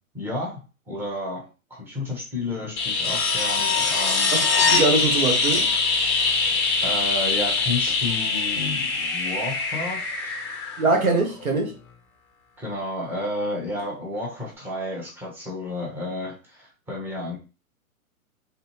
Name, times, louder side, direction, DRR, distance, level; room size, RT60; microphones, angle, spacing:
voice 1, 0.1-4.3 6.8-10.4 12.6-17.4, left 1 dB, 5° right, 0.9 m, -31 dB
sound 1, 2.8-11.4 13.8-13.9, left 4 dB, 20° left, 0.5 m, -23 dB
voice 2, 4.3-5.7 10.8-11.7, right 3 dB, 70° right, 1.2 m, -23 dB
3.3 x 2.6 x 2.9 m
figure-of-eight pair, 115°, 43 cm